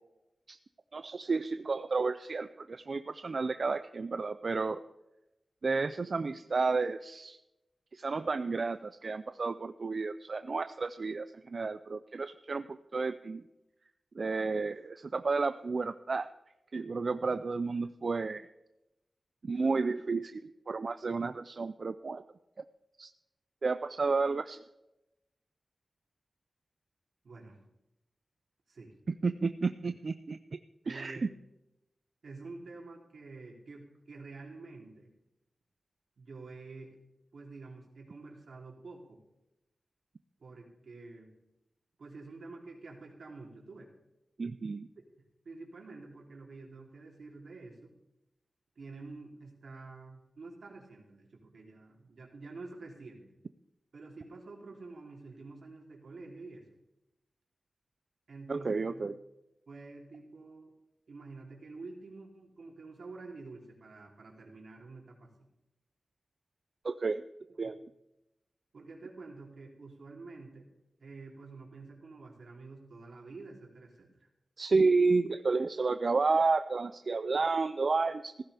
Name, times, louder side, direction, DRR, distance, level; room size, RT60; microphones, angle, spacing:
voice 1, 0.9-4.8 5.6-7.4 7.9-13.4 14.1-16.3 16.7-18.5 19.4-22.2 23.0-23.1 23.6-24.6 29.1-30.6 30.9-31.2 44.4-44.9 58.5-59.2 66.8-67.2 67.6-67.8 74.6-78.3, right 4 dB, 55° right, 10 dB, 0.4 m, -31 dB
voice 2, 27.2-27.6 28.7-28.9 30.8-31.3 32.2-35.1 36.2-37.0 37.3-39.2 40.4-41.4 42.0-43.9 45.0-45.1 45.4-47.9 48.7-53.3 53.9-56.7 58.3-58.9 59.7-60.7 61.1-65.3 68.7-70.7 71.0-74.3, right 3 dB, 80° right, -1 dB, 3.2 m, -48 dB
16.0 x 15.0 x 3.4 m, 0.92 s
wide cardioid pair, 90°, 0 cm